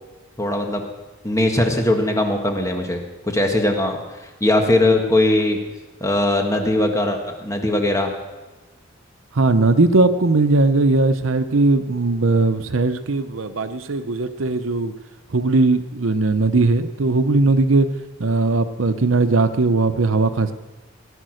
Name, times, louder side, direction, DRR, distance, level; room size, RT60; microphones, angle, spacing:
voice 1, 0.4-0.8 1.2-5.6 6.0-8.1, left 1 dB, 15° left, 2 dB, 1.6 m, -20 dB
voice 2, 9.3-14.9 15.3-17.9 18.2-20.5, right 3 dB, 80° right, 10 dB, 0.8 m, -18 dB
19.0 x 11.5 x 6.4 m, 1.2 s
head